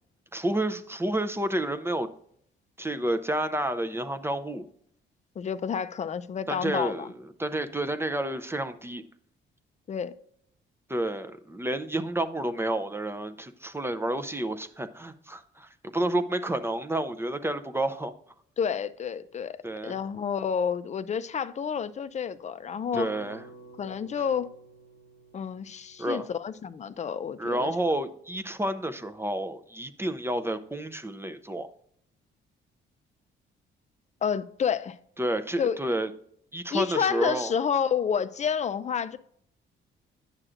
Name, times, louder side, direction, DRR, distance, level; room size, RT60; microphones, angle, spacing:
voice 1, 0.3-2.1 2.8-4.6 6.5-7.1 7.4-9.0 10.9-18.1 19.6-19.9 22.9-23.4 26.0-26.3 27.4-31.7 35.2-36.1 36.5-37.5, right 1 dB, 10° right, 0.5 m, -30 dB
voice 2, 5.4-7.1 9.9-10.2 18.6-19.6 19.8-23.1 23.8-24.5 25.3-27.7 34.2-35.0 35.6-35.8 36.7-39.2, left 7 dB, 35° left, 0.5 m, -29 dB
sound 1, 22.9-27.2, right 1 dB, 50° left, 0.9 m, -50 dB
9.8 x 6.4 x 2.5 m
cardioid pair, 90°, 20 cm